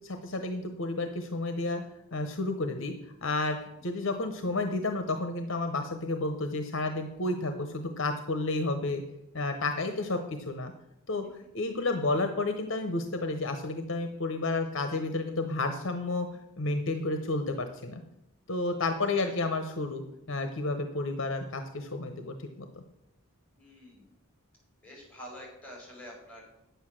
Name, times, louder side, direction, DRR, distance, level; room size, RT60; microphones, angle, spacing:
voice 1, 0.0-1.8 2.1-2.9 3.2-9.0 9.3-10.7 11.1-16.3 16.6-18.0 18.5-20.0 20.3-22.7, left 2 dB, 60° left, 7 dB, 0.9 m, -31 dB
voice 2, 3.7-4.1 9.9-10.1 19.1-19.4 23.6-24.1 24.8-26.5, equal, 5° left, -3 dB, 5.0 m, -47 dB
9.4 x 8.0 x 6.4 m, 0.86 s
head